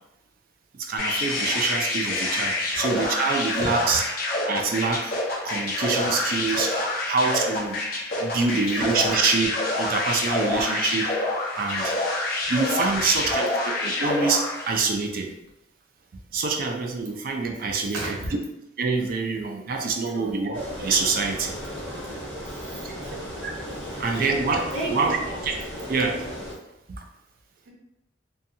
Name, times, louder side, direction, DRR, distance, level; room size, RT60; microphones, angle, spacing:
voice 1, 0.8-4.0 4.5-5.2 5.4-6.8 7.1-7.8 8.2-11.1 11.5-11.9 12.5-15.3 16.3-18.2 18.8-21.5 22.8-22.9 23.4-23.5 24.0-25.2 25.4-25.5 25.9-26.2, right 4 dB, 45° right, 3 dB, 0.3 m, -25 dB
sound 1, 1.0-14.8, left 2 dB, 45° left, 0.5 m, -27 dB
voice 2, 8.4-8.8 17.9-18.3 20.0-20.3 22.4-23.3 23.9-24.3 24.7-25.3 27.7-27.8, right 1 dB, 80° right, -5 dB, 1.0 m, -35 dB
sound 2, 20.5-26.5, equal, 10° left, 0.7 m, -35 dB
2.7 x 2.2 x 2.6 m, 0.88 s
head